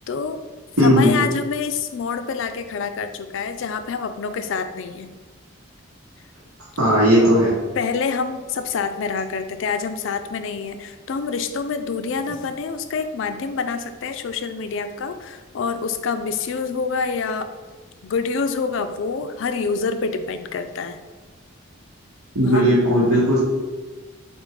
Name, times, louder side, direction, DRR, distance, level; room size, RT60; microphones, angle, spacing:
voice 1, 0.1-0.4 0.8-5.1 7.8-17.5 18.0-21.0 22.4-22.8, left 5 dB, 60° left, 9 dB, 0.3 m, -27 dB
voice 2, 0.8-1.1 6.8-7.5 22.3-23.4, equal, 85° right, -6 dB, 1.1 m, -16 dB
4.3 x 3.4 x 3.2 m, 1.4 s
head